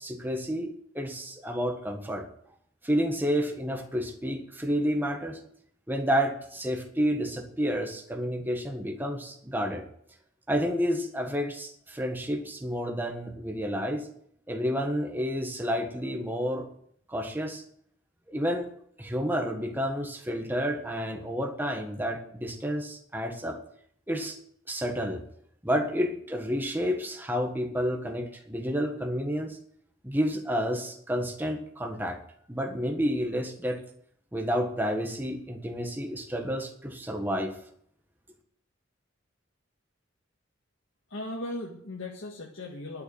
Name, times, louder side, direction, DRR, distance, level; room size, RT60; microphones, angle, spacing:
voice 1, 0.0-2.2 2.8-5.4 5.9-9.8 10.5-14.1 14.5-16.7 17.1-17.6 18.3-18.7 19.0-23.6 24.1-24.4 24.7-25.2 25.6-29.6 30.0-32.2 32.5-33.8 34.3-37.5, equal, 10° right, 3 dB, 1.5 m, -30 dB
voice 2, 41.1-43.0, left 1 dB, 75° left, -1 dB, 1.8 m, -37 dB
11.5 x 7.1 x 9.5 m, 0.66 s
head